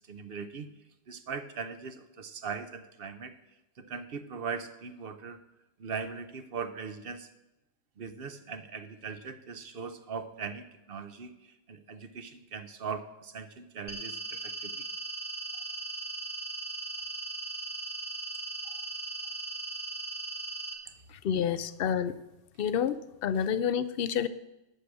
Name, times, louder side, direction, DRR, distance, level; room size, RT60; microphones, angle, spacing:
voice 1, 0.1-0.7 1.1-3.3 3.8-5.4 5.8-7.3 8.0-14.9 18.6-18.8 21.4-21.6, right 5 dB, 55° right, 10 dB, 0.9 m, -40 dB
sound 1, 13.9-20.7, right 3 dB, 25° left, 1.3 m, -38 dB
voice 2, 21.2-22.2 22.6-24.3, left 8 dB, 60° left, 14 dB, 0.7 m, -29 dB
12.0 x 5.1 x 8.3 m, 0.94 s
omnidirectional pair, 1.3 m